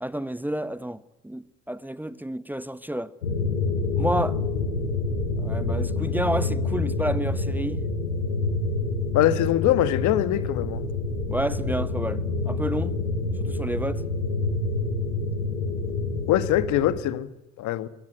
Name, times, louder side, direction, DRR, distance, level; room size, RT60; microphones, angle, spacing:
voice 1, 0.0-3.1 4.0-4.4 5.4-7.8 11.2-12.9 13.4-14.0, right 1 dB, 5° right, 1.1 m, -30 dB
sound 1, 3.2-17.0, left 3 dB, 90° left, 5.3 m, -27 dB
voice 2, 9.1-10.8 16.3-17.3 17.6-17.9, left 13 dB, 60° left, 1.5 m, -23 dB
23.5 x 18.5 x 8.9 m
hypercardioid pair, 60°, 33 cm